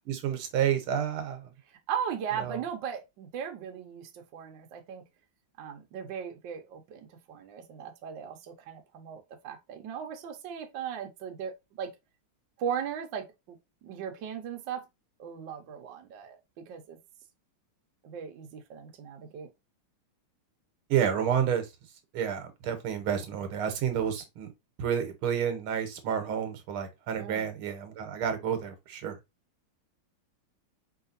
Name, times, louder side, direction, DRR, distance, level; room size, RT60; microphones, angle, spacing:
voice 1, 0.1-1.5 2.4-2.6 20.9-21.6 22.1-24.5 24.8-29.2, right 8 dB, 85° right, 1.8 m, -30 dB
voice 2, 1.9-5.0 5.6-11.9 12.6-13.6 13.8-14.8 15.2-17.0 18.0-19.5 27.2-27.4, right 8 dB, 65° right, 1.4 m, -38 dB
4.8 x 3.2 x 2.5 m
omnidirectional pair, 2.3 m